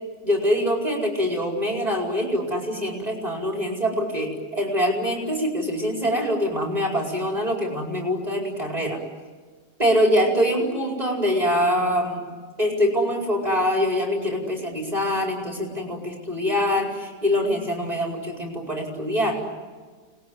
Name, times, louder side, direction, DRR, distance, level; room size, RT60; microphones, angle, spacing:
voice 1, 0.2-9.0 9.8-12.2 12.6-19.4, equal, 20° right, 0 dB, 4.8 m, -24 dB
30.0 x 20.5 x 9.5 m, 1.5 s
omnidirectional pair, 1.9 m